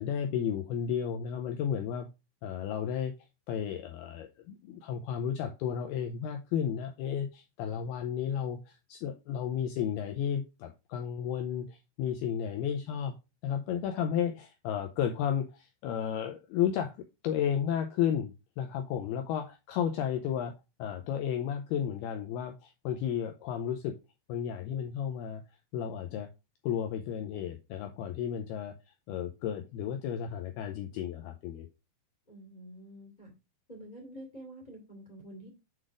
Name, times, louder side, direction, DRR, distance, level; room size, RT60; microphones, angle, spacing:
voice 1, 0.0-2.1 2.4-3.1 3.5-13.1 13.4-17.0 17.2-20.5 20.8-24.0 24.3-25.4 25.7-26.3 26.6-28.7 29.1-31.7, left 9 dB, 90° left, 2.2 m, -33 dB
voice 2, 32.3-33.3 33.7-35.5, right 1 dB, 20° left, 1.2 m, -48 dB
7.7 x 4.0 x 4.8 m
omnidirectional pair, 5.3 m